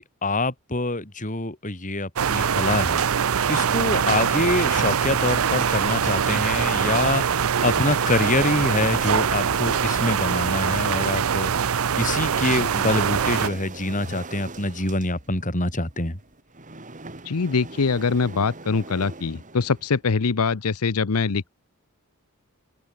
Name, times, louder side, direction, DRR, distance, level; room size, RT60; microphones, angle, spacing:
voice 1, 0.0-16.2, left 2 dB, 35° left, 4.5 m, -26 dB
sound 1, 2.2-13.5, right 7 dB, 70° right, 0.6 m, -23 dB
sound 2, 7.9-10.5 11.1-20.0, right 3 dB, 35° right, 2.9 m, -40 dB
voice 2, 17.2-21.6, left 4 dB, 85° left, 0.7 m, -23 dB
open air
head